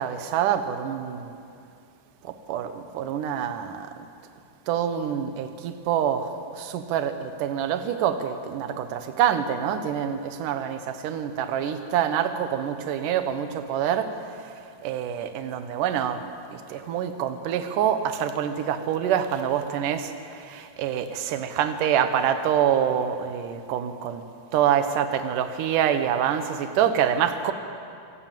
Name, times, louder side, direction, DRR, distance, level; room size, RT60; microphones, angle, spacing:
voice 1, 0.0-1.3 2.2-3.9 4.7-24.2 24.5-27.5, right 9 dB, 70° right, 9 dB, 2.1 m, -26 dB
24.5 x 17.0 x 7.5 m, 2.4 s
omnidirectional pair, 4.9 m